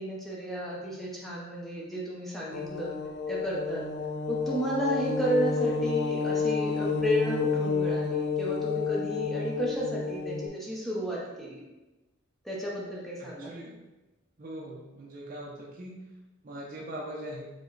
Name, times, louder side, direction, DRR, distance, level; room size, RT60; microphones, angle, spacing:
voice 1, 0.0-2.9 3.3-3.8 4.3-11.6 12.4-13.6, equal, ahead, -5 dB, 0.6 m, -32 dB
sound 1, 2.5-10.5, left 5 dB, 55° left, 0.4 m, -30 dB
voice 2, 13.2-13.8 14.4-16.0 16.4-17.5, right 1 dB, 40° right, -3 dB, 0.5 m, -41 dB
5.0 x 2.1 x 3.9 m, 1.1 s
head